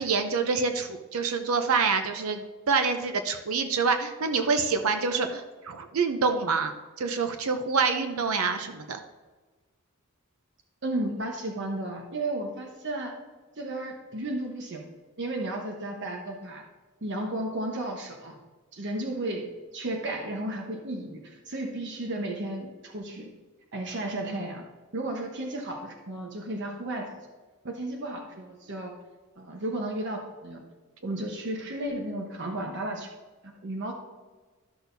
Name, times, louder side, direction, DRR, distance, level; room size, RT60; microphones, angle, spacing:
voice 1, 0.0-6.7 7.0-9.0, right 4 dB, 75° right, 7 dB, 0.7 m, -26 dB
voice 2, 10.8-13.1 13.6-14.8 15.2-16.6 17.0-18.4 18.7-23.3 23.7-24.6 24.9-27.3 27.6-28.9 29.4-30.6 31.0-33.1 33.4-33.9, right 1 dB, 55° right, 1 dB, 1.0 m, -33 dB
13.0 x 6.3 x 2.7 m, 1.3 s
head